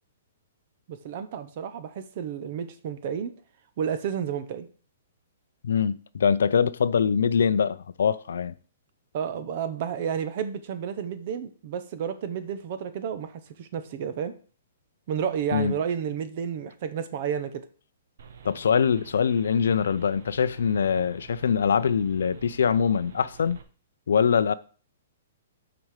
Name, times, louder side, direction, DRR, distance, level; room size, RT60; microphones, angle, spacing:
voice 1, 0.9-3.3 3.8-4.7 9.1-14.3 15.1-17.7, right 8 dB, 40° right, 0.9 m, -31 dB
voice 2, 5.6-8.5 15.5-15.7 18.4-23.6 24.1-24.5, left 7 dB, 85° left, 0.5 m, -23 dB
sound 1, 18.2-23.6, right 7 dB, 65° right, 1.2 m, -48 dB
6.4 x 5.1 x 6.5 m
hypercardioid pair, 165°, 0 cm